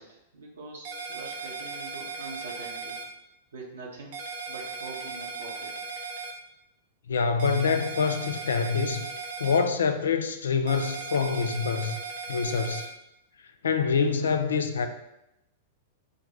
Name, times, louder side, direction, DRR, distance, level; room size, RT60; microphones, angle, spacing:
voice 1, 0.0-3.0 3.5-4.2 4.5-5.7, right 3 dB, 70° right, 1.1 m, -43 dB
sound 1, 0.9-3.1 4.1-6.3 7.4-9.6 10.7-12.9, right 4 dB, 50° right, 0.7 m, -37 dB
voice 2, 7.1-9.1 9.4-12.0 12.3-12.9 13.6-14.9, left 5 dB, 70° left, 0.4 m, -26 dB
6.3 x 2.2 x 3.0 m
figure-of-eight pair, 100°, 0 cm